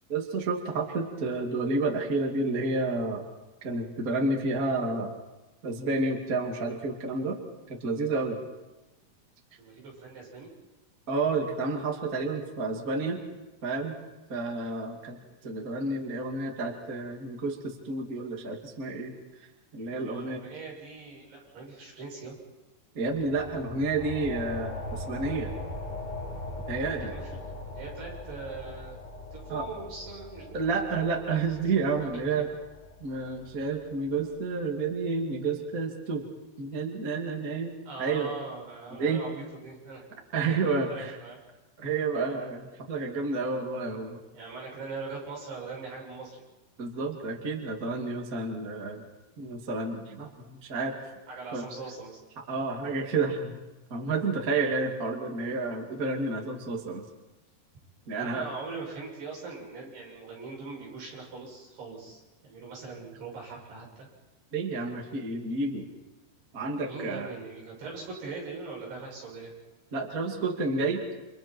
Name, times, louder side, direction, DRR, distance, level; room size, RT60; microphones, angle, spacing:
voice 1, 0.1-3.2 3.6-5.1 5.6-7.4 7.7-8.4 11.1-13.2 13.6-14.0 14.3-15.2 15.4-19.1 19.7-20.4 22.9-25.5 26.7-27.1 29.5-29.7 30.1-30.2 30.5-32.5 33.0-36.3 36.6-38.3 39.0-39.2 40.3-41.2 41.8-44.2 46.8-49.0 49.4-51.0 51.5-51.9 52.5-53.6 53.9-57.0 58.1-58.5 64.5-65.9 66.5-67.3 69.3-69.4 69.9-71.1, right 3 dB, 25° right, 1 dB, 2.3 m, -30 dB
voice 2, 9.6-10.5 20.0-22.4 27.0-28.9 29.3-31.0 32.3-32.4 37.9-40.0 40.5-41.4 44.3-46.4 51.3-52.2 58.1-64.1 66.8-69.5, right 3 dB, 80° right, -3 dB, 9.4 m, -41 dB
sound 1, 23.0-34.2, left 1 dB, 60° left, 5.5 m, -40 dB
30.0 x 27.5 x 4.6 m, 1.1 s
omnidirectional pair, 4.6 m